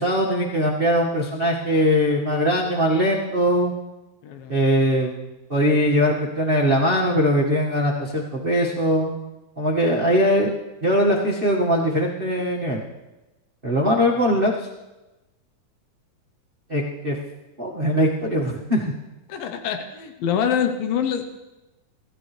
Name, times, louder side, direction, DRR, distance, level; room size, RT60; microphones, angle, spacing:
voice 1, 0.0-3.7 4.5-5.2 5.5-9.1 9.6-10.5 10.8-12.8 13.6-14.7 16.7-17.2 17.6-18.9, equal, 45° right, -3 dB, 0.7 m, -21 dB
voice 2, 4.2-4.6 19.3-21.2, left 8 dB, 90° left, 6 dB, 2.8 m, -25 dB
25.5 x 14.0 x 3.3 m, 1.0 s
omnidirectional pair, 4.0 m